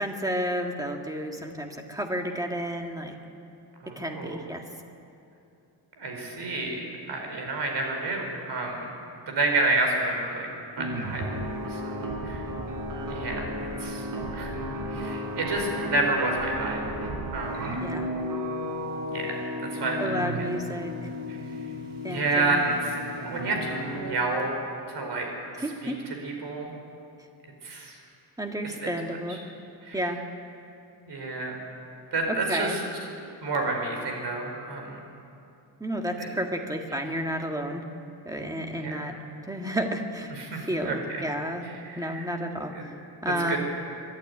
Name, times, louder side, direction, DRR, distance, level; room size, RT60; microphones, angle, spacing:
voice 1, 0.0-3.1 4.0-4.6 17.8-18.1 20.0-21.1 22.0-22.6 25.6-26.0 28.4-29.4 29.9-30.2 32.3-32.8 35.8-37.8 38.3-39.2 39.5-40.3 40.7-41.7 42.0-42.7 43.2-43.6, equal, 10° right, 3 dB, 1.7 m, -31 dB
voice 2, 3.8-4.4 6.0-8.9 9.3-11.2 11.7-12.4 13.1-13.5 13.8-14.0 14.3-14.5 14.9-16.8 17.3-17.8 19.1-19.4 19.7-20.0 21.3-21.4 22.0-22.9 23.3-24.6 24.9-25.3 25.8-25.9 26.2-26.7 27.6-28.0 29.8-30.0 31.1-31.6 32.1-32.8 33.4-35.0 36.2-36.3 38.8-39.1 40.4-41.0 41.7-42.3 42.7-42.8 43.5-43.6, right 2 dB, 70° right, 2 dB, 4.7 m, -29 dB
sound 1, 10.8-24.2, equal, 55° right, 3.6 m, -33 dB
23.5 x 12.0 x 9.8 m, 2.7 s
wide cardioid pair, 140°, 42 cm